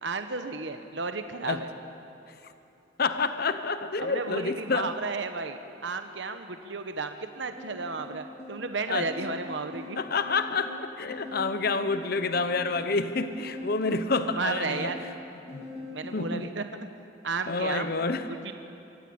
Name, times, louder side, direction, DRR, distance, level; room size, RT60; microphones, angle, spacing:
voice 1, 0.0-1.7 4.0-10.0 14.3-15.0 15.9-16.9 17.2-17.9 18.3-18.5, right 4 dB, 70° right, 8 dB, 1.0 m, -33 dB
voice 2, 3.0-4.9 8.9-9.1 10.0-14.9 15.5-15.6 16.0-16.5 17.5-18.3, left 4 dB, 50° left, 10 dB, 0.9 m, -28 dB
sound 1, 7.6-16.3, left 2 dB, 30° left, 2.6 m, -43 dB
24.0 x 16.0 x 8.6 m, 2.8 s
head